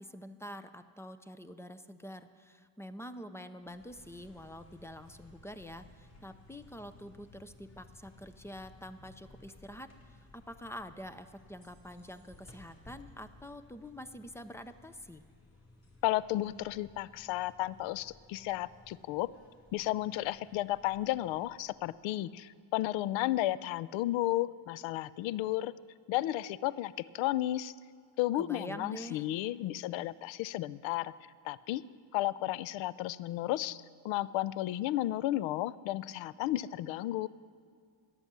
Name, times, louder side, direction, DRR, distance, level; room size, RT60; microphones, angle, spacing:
voice 1, 0.0-15.2 28.4-29.2, equal, 5° left, 11 dB, 0.3 m, -46 dB
sound 1, 3.6-22.1, left 2 dB, 35° left, 4.1 m, -59 dB
voice 2, 16.0-19.3 19.7-25.7 26.1-27.7 28.2-31.1 31.4-31.8 32.1-37.3, left 15 dB, 70° left, 19 dB, 0.6 m, -33 dB
13.0 x 10.5 x 7.4 m, 2.2 s
cardioid pair, 115°, 47 cm